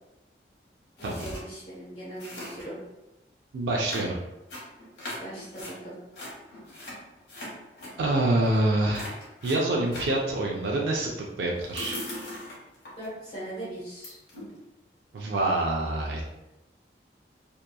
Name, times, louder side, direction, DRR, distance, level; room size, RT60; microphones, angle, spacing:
sound 1, 1.0-1.4 1.7-1.8 2.0-2.8 3.8-5.7 6.1-7.9 8.4-8.7 8.9-10.2 11.6-13.1 13.5-13.6 14.0-14.6, left 1 dB, 65° left, 1.0 m, -40 dB
voice 1, 1.0-2.8 5.2-6.0 13.0-14.2, right 1 dB, 35° left, -8 dB, 0.9 m, -39 dB
voice 2, 3.5-4.1 8.0-9.1 9.4-11.1 11.4-12.0 15.1-16.3, right 2 dB, 80° right, -2 dB, 0.4 m, -26 dB
2.8 x 2.2 x 2.3 m, 0.97 s
head